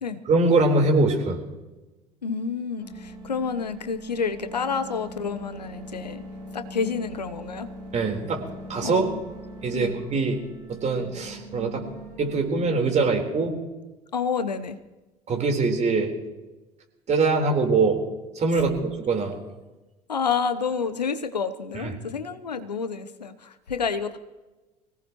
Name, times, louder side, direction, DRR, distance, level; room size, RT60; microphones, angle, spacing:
voice 1, 0.3-1.4 7.9-8.4 8.7-9.1 9.6-10.4 10.7-11.9 12.2-13.6 15.3-16.1 17.1-18.0 18.4-19.4 21.8-21.9, right 3 dB, 35° right, 2 dB, 4.0 m, -23 dB
voice 2, 2.2-6.2 6.5-7.7 8.8-9.2 9.7-9.9 14.1-14.8 20.1-24.2, left 5 dB, 85° left, 11 dB, 0.9 m, -29 dB
sound 1, 2.8-13.5, right 1 dB, 80° right, 2.6 m, -41 dB
24.5 x 18.0 x 3.1 m, 1.1 s
figure-of-eight pair, 65°, 21 cm